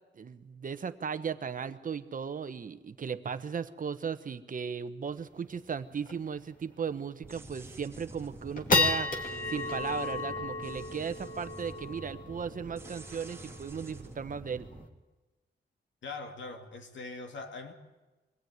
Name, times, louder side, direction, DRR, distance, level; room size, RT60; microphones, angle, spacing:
voice 1, 0.1-9.1 9.5-14.7, right 6 dB, 45° right, 11 dB, 1.0 m, -36 dB
sound 1, 5.2-5.3 5.6-5.7 6.1-6.3 6.8-6.9 7.4-7.8 8.2-14.8, left 3 dB, 45° left, 2.5 m, -33 dB
sound 2, 7.2-14.8, right 2 dB, 15° right, 2.0 m, -48 dB
voice 2, 16.0-17.7, left 3 dB, 85° left, 5 dB, 2.5 m, -42 dB
24.0 x 17.5 x 9.5 m, 1.2 s
wide cardioid pair, 150°, 19 cm